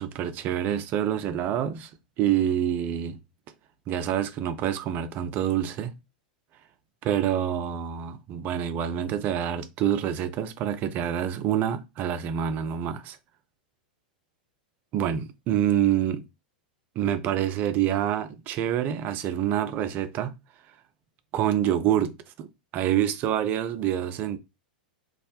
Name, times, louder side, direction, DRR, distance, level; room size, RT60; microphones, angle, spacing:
voice 1, 0.0-1.9 2.2-3.2 3.9-5.9 7.0-13.2 14.9-16.2 17.0-20.3 21.3-22.1 22.4-22.5 22.7-24.4, right 10 dB, 40° right, 0.4 m, -26 dB
2.3 x 2.1 x 2.8 m
hypercardioid pair, 100°, 5 cm